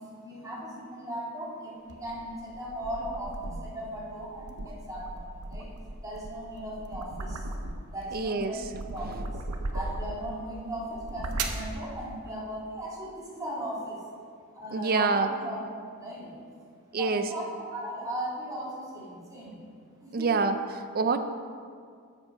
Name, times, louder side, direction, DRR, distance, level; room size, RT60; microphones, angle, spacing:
voice 1, 0.0-5.7 6.0-7.5 7.9-8.6 8.9-9.4 9.7-14.0 14.5-15.6 16.0-16.4 16.9-19.6 20.0-20.4, equal, 15° right, -6 dB, 2.1 m, -37 dB
sound 1, 1.9-3.8 4.3-8.0 8.4-10.3 10.9-11.7, right 2 dB, 80° right, 0.8 m, -37 dB
voice 2, 8.1-8.5 9.1-9.2 14.7-15.3 16.9-17.2 20.1-21.2, right 4 dB, 40° right, 9 dB, 0.5 m, -26 dB
7.8 x 7.1 x 5.7 m, 2.2 s
head